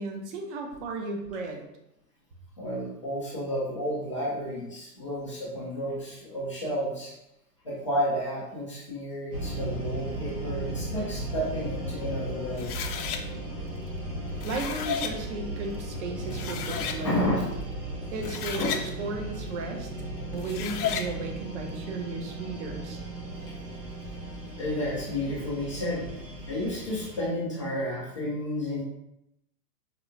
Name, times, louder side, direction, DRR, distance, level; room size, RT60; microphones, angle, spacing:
voice 1, 0.0-1.6 14.4-17.4 18.1-19.9 20.3-23.0, right 3 dB, 45° right, 3 dB, 0.7 m, -35 dB
voice 2, 2.6-7.1 7.6-12.7 17.0-17.4 18.5-18.7 24.6-26.1 26.5-28.8, left 1 dB, 25° left, -7 dB, 0.3 m, -31 dB
sound 1, 9.3-27.3, right 2 dB, 80° right, 1.2 m, -36 dB
sound 2, 12.6-13.2 14.2-15.1 15.9-16.0 16.3-17.0 18.1-18.8 20.3-21.1, left 8 dB, 65° left, 0.6 m, -33 dB
4.4 x 2.1 x 2.6 m, 0.84 s
hypercardioid pair, 135°, 50 cm